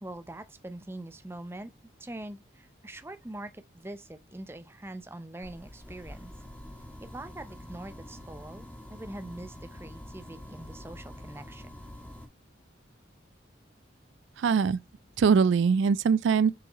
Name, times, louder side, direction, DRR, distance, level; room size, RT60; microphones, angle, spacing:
voice 1, 0.0-1.7 2.0-6.3 7.0-8.6 8.9-11.7, right 1 dB, 10° right, 0.5 m, -43 dB
sound 1, 5.4-12.2, left 1 dB, 10° left, 2.0 m, -46 dB
voice 2, 14.4-14.8 15.2-16.5, right 6 dB, 75° right, 0.3 m, -22 dB
7.2 x 4.7 x 3.0 m
head